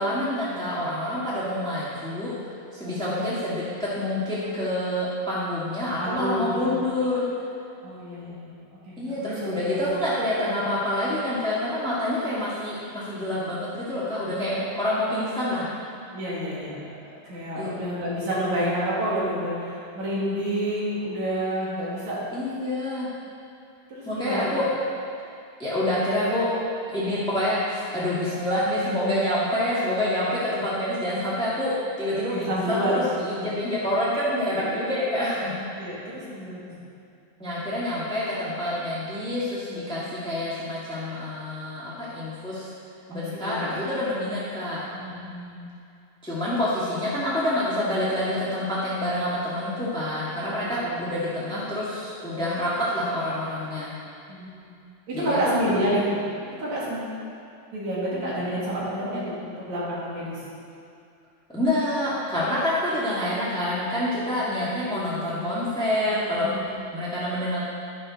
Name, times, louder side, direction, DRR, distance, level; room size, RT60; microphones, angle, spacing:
voice 1, 0.0-2.3 2.7-7.3 9.0-15.7 17.6-17.7 22.3-23.1 24.0-24.6 25.6-26.5 26.9-32.9 33.1-36.0 37.4-42.7 43.1-44.8 46.2-53.9 55.1-55.8 61.5-66.5 66.9-67.6, left 1 dB, ahead, -9 dB, 1.2 m, -27 dB
voice 2, 2.8-3.1 6.0-6.7 7.8-8.5 8.9-9.9 14.3-14.6 16.1-22.2 23.9-24.5 32.3-33.1 33.3-33.6 34.6-34.9 35.7-36.8 43.1-43.8 44.9-45.6 50.4-51.3 52.4-52.6 54.3-54.6 55.1-56.2 56.5-57.1 57.7-60.4 64.3-64.4 64.7-65.3 66.1-66.8, right 1 dB, 70° right, -7 dB, 4.0 m, -30 dB
11.5 x 10.5 x 4.2 m, 2.4 s
omnidirectional pair, 3.4 m